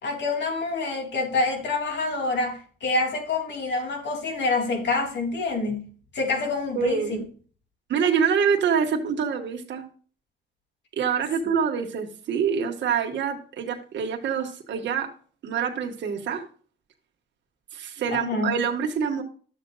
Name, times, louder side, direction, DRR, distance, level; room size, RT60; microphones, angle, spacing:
voice 1, 0.0-7.2 18.1-18.5, left 3 dB, 60° left, 3 dB, 3.1 m, -27 dB
voice 2, 6.8-7.2 7.9-9.8 10.9-15.1 15.4-16.4 17.7-19.2, right 7 dB, 65° right, 3 dB, 1.7 m, -26 dB
12.5 x 7.7 x 2.4 m, 0.42 s
cardioid pair, 90°, 20 cm